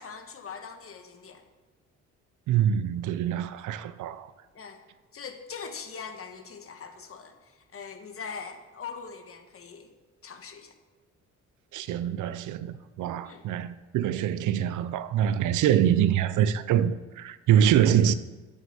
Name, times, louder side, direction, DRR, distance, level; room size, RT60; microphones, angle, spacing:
voice 1, 0.0-1.4 4.5-4.8 5.1-9.9 10.2-10.7 13.2-13.4, left 5 dB, 45° left, 1.4 m, -42 dB
voice 2, 2.5-4.3 11.7-18.1, right 9 dB, 80° right, 0.6 m, -25 dB
8.2 x 7.5 x 6.8 m
cardioid pair, 90°, 30 cm